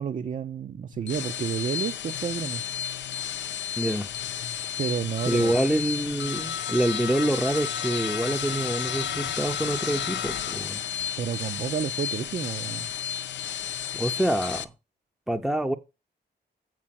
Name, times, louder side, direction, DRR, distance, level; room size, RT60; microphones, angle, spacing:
voice 1, 0.0-2.6 4.8-5.6 11.2-12.9, right 7 dB, 45° right, 0.5 m, -30 dB
sound 1, 0.9-14.6, left 9 dB, 80° left, 0.6 m, -32 dB
voice 2, 3.8-4.1 5.3-10.8 13.9-14.7 15.3-15.8, right 1 dB, ahead, 0.6 m, -26 dB
7.6 x 4.6 x 5.8 m
wide cardioid pair, 125°, 18 cm